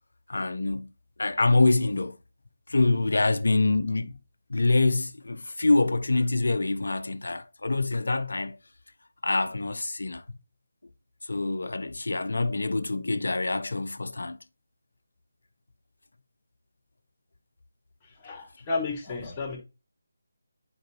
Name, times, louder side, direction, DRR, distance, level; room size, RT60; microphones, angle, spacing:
voice 1, 0.3-0.9 1.2-2.2 2.7-4.2 4.5-8.6 9.2-10.2 11.2-14.4, left 2 dB, 65° left, 0.7 m, -25 dB
voice 2, 18.2-19.6, left 3 dB, 20° left, 2.1 m, -32 dB
10.5 x 4.8 x 2.9 m
figure-of-eight pair, 155°, 0 cm